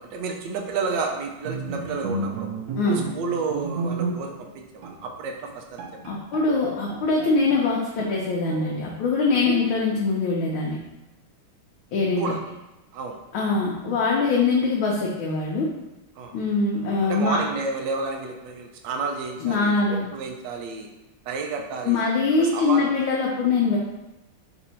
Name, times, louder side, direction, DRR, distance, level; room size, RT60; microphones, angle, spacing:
voice 1, 0.0-2.5 2.9-5.8 6.1-6.2 12.2-12.4 12.9-13.2 16.2-16.4 17.0-19.8 20.1-20.9 21.3-22.1 22.4-22.8, right 4 dB, 70° right, 2 dB, 1.2 m, -31 dB
Bowed string instrument, 1.4-4.5 4.8-5.0 5.5-5.6 5.8-7.7 8.0-8.8 9.5-10.1, right 3 dB, 85° right, 0.8 m, -32 dB
voice 2, 6.0-10.8 11.9-12.3 13.3-15.7 16.3-17.4 19.4-20.0 21.8-23.8, left 4 dB, 80° left, -3 dB, 1.4 m, -23 dB
4.2 x 2.6 x 4.1 m, 0.98 s
omnidirectional pair, 2.3 m